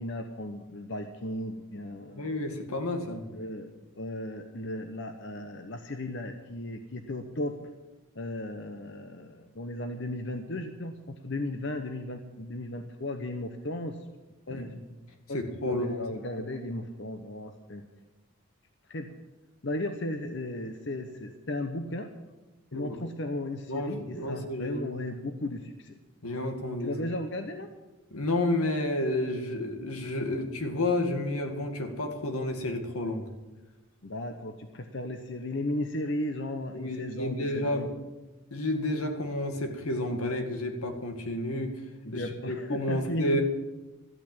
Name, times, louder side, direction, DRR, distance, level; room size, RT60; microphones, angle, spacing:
voice 1, 0.0-2.2 3.3-3.7 4.0-7.6 8.1-14.0 14.5-14.7 15.3-17.8 18.9-19.1 19.6-22.1 22.7-26.0 26.8-27.7 34.0-37.9 42.0-43.4, left 1 dB, 55° left, 7 dB, 0.9 m, -35 dB
voice 2, 2.1-3.3 14.5-14.7 15.3-16.1 22.7-23.0 23.7-24.8 26.2-26.9 28.1-33.3 36.7-37.9 38.5-41.7 42.1-43.4, left 1 dB, 90° left, 5 dB, 2.1 m, -31 dB
13.5 x 9.2 x 8.6 m, 1.1 s
head